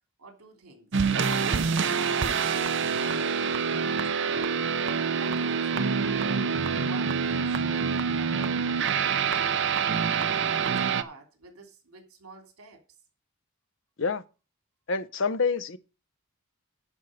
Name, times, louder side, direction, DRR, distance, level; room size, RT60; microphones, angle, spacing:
voice 1, 0.2-1.0 1.5-6.2 6.8-12.8, right 3 dB, 80° right, 3.2 m, -48 dB
sound 1, 0.9-11.0, right 6 dB, 55° right, 0.6 m, -26 dB
voice 2, 14.9-15.8, left 4 dB, 60° left, 0.7 m, -27 dB
11.0 x 4.6 x 7.7 m
head